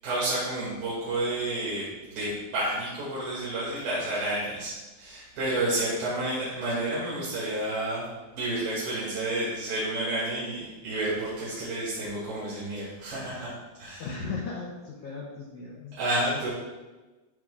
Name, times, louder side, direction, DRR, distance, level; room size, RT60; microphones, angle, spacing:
voice 1, 0.0-8.1 8.3-13.5 13.8-14.1 16.0-16.5, right 1 dB, 75° right, -9 dB, 4.1 m, -30 dB
voice 2, 14.0-16.0, left 4 dB, 75° left, -2 dB, 1.7 m, -36 dB
14.0 x 5.9 x 2.4 m, 1.2 s
omnidirectional pair, 4.5 m